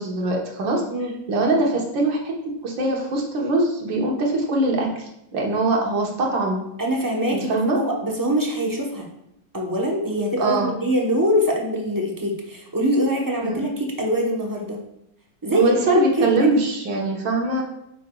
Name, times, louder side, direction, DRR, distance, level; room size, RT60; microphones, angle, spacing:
voice 1, 0.0-0.8 1.3-2.3 2.6-6.6 7.3-7.8 10.4-10.7 13.4-13.6 15.5-17.6, right 2 dB, 75° right, -1 dB, 2.0 m, -22 dB
voice 2, 6.8-9.1 9.5-14.8 15.4-16.6, equal, 15° right, -2 dB, 0.6 m, -23 dB
9.1 x 6.4 x 2.3 m, 0.81 s
omnidirectional pair, 2.1 m